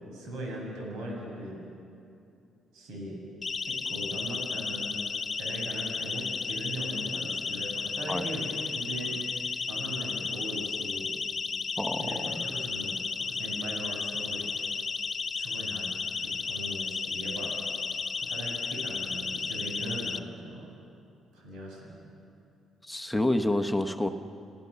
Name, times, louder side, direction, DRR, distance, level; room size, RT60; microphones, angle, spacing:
voice 1, 0.1-1.6 2.7-3.2 3.6-5.0 5.3-9.3 9.7-11.1 12.0-14.5 15.3-15.9 16.2-17.6 18.2-20.7 21.3-22.0, right 1 dB, 90° right, -1 dB, 6.7 m, -39 dB
Siren, 3.4-20.2, left 5 dB, 35° left, 0.9 m, -33 dB
voice 2, 11.8-12.5 22.8-24.1, left 1 dB, 5° left, 6 dB, 1.0 m, -28 dB
29.0 x 15.0 x 6.9 m, 2.6 s
cardioid pair, 90°, 0 cm